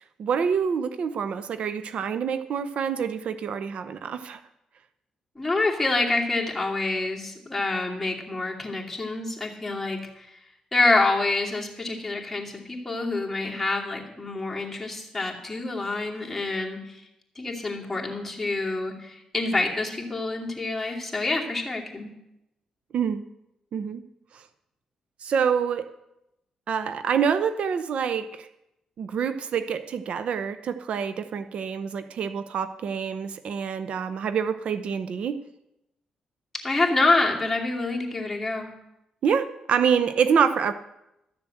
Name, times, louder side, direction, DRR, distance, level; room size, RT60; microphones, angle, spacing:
voice 1, 0.2-4.4 22.9-23.2 23.7-24.0 24.3-24.4 25.2-25.9 26.7-28.5 29.0-35.4 39.2-40.7, right 7 dB, 65° right, 11 dB, 0.7 m, -26 dB
voice 2, 5.4-10.3 10.7-17.0 17.4-22.1 36.6-38.7, left 2 dB, 10° left, -2 dB, 2.6 m, -27 dB
13.0 x 7.2 x 7.7 m, 0.87 s
cardioid pair, 85°, 2 cm